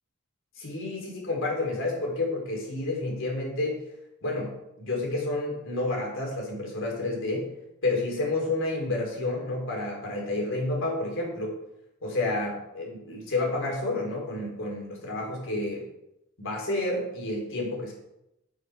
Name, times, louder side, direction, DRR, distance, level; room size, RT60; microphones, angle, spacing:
voice 1, 0.6-3.8 4.2-7.5 7.8-11.6 12.0-15.8 16.4-17.9, left 2 dB, 65° left, -1 dB, 3.9 m, -30 dB
9.5 x 8.9 x 4.9 m, 0.88 s
head